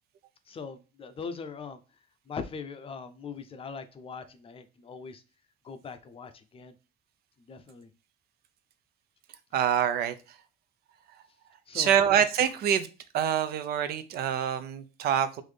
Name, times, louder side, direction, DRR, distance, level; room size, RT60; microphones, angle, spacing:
voice 1, 0.5-1.8 2.3-5.2 5.6-6.7 7.5-7.9 11.7-12.0, left 5 dB, 35° left, 0.5 m, -41 dB
voice 2, 9.5-10.1 11.7-12.9 13.1-15.4, right 9 dB, 70° right, 0.5 m, -25 dB
3.8 x 2.6 x 3.2 m
cardioid pair, 110°, 17 cm